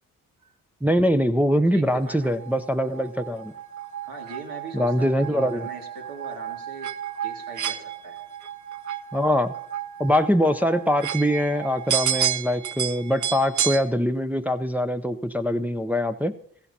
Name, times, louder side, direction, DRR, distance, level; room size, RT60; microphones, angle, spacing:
voice 1, 0.8-3.5 4.7-5.7 9.1-9.5 10.0-16.3, equal, 5° right, 7 dB, 0.5 m, -23 dB
voice 2, 1.6-2.4 4.0-6.9 7.2-8.2, right 3 dB, 80° right, 1 dB, 2.3 m, -41 dB
sound 1, 2.1-13.8, right 9 dB, 55° right, 0.7 m, -31 dB
16.0 x 14.5 x 2.8 m, 0.65 s
cardioid pair, 65°, 35 cm